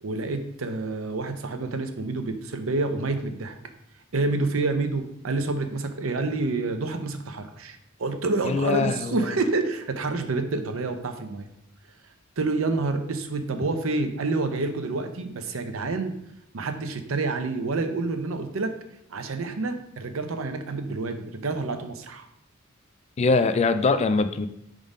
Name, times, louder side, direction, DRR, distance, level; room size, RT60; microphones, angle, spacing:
voice 1, 0.0-3.5 4.1-11.5 12.4-16.1 16.5-18.7 19.1-22.3, right 3 dB, 70° right, 7 dB, 0.7 m, -28 dB
voice 2, 8.4-9.3 23.2-24.5, left 4 dB, 30° left, 9 dB, 0.3 m, -23 dB
4.9 x 3.7 x 5.3 m, 0.81 s
head